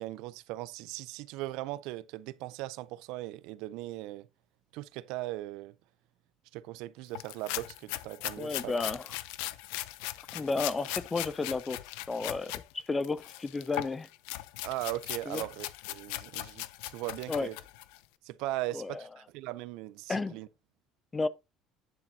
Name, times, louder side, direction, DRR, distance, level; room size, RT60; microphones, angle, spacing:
voice 1, 0.0-4.3 4.7-5.7 6.5-8.7 14.6-17.6 18.2-20.5, right 17 dB, 60° right, 0.5 m, -39 dB
sound 1, 7.1-12.6 13.0-18.0, left 17 dB, 90° left, 0.6 m, -39 dB
voice 2, 8.4-9.1 10.3-11.8 12.1-14.1 15.3-15.4 17.3-17.5 18.7-19.0 20.1-20.4 21.1-21.3, left 3 dB, 10° left, 0.4 m, -32 dB
9.9 x 7.4 x 2.7 m
cardioid pair, 180°, 0 cm